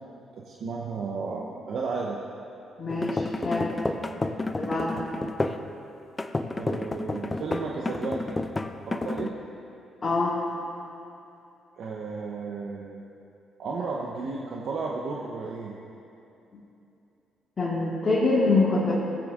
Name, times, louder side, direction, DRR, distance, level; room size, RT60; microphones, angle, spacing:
voice 1, 0.3-2.2 6.6-8.4 8.9-9.4 11.8-13.1 13.6-15.7, right 4 dB, 65° right, -2 dB, 0.7 m, -33 dB
voice 2, 2.8-3.7 4.5-5.0 10.0-10.3 17.6-18.9, left 3 dB, 40° left, -7 dB, 1.7 m, -25 dB
sound 1, 2.9-5.7 6.2-9.3, left 2 dB, 25° left, 0.5 m, -31 dB
16.0 x 8.6 x 2.4 m, 2.8 s
hypercardioid pair, 50°, 0 cm